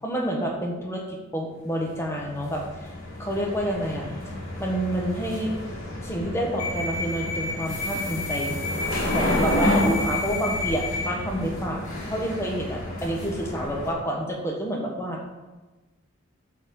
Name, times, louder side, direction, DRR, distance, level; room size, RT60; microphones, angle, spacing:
voice 1, 0.0-2.9 3.2-4.1 4.6-5.5 6.0-8.6 9.0-15.3, right 1 dB, 10° left, -1 dB, 1.5 m, -29 dB
sound 1, 1.9-13.9, left 1 dB, 65° left, 3.2 m, -29 dB
11.5 x 4.1 x 7.1 m, 1.2 s
head